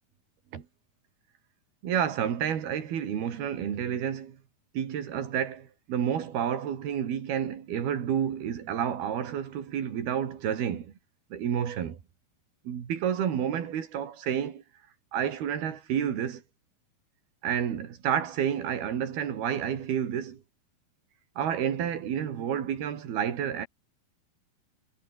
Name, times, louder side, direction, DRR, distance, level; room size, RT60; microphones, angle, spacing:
voice 1, 1.8-4.4 4.7-10.9 11.3-12.0 12.7-14.6 15.1-16.4 17.4-20.4 21.4-23.7, right 9 dB, 70° right, 4.7 m, -30 dB
omnidirectional pair, 4.6 m